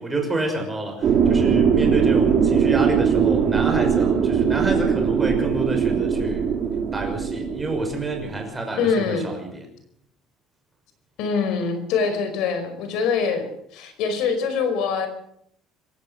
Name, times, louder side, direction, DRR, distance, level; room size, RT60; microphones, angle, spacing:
voice 1, 0.0-6.5 6.9-9.6, right 2 dB, 10° right, 3 dB, 5.9 m, -28 dB
sound 1, 1.0-8.4, right 7 dB, 40° right, 3.0 m, -21 dB
voice 2, 8.8-9.3 11.2-13.5 13.7-15.1, left 5 dB, 70° left, 8 dB, 5.2 m, -24 dB
26.5 x 16.5 x 6.7 m, 0.70 s
cardioid pair, 150°, 0 cm